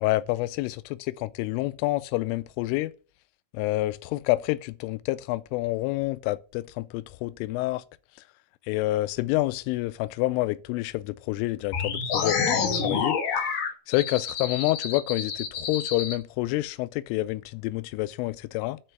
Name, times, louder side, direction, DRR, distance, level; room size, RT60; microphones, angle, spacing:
voice 1, 0.0-2.9 3.5-7.8 8.7-13.2 13.9-18.8, left 18 dB, 85° left, 3.1 m, -28 dB
sound 1, 11.7-16.1, left 6 dB, 65° left, 2.3 m, -28 dB
10.0 x 4.8 x 5.9 m
omnidirectional pair, 5.7 m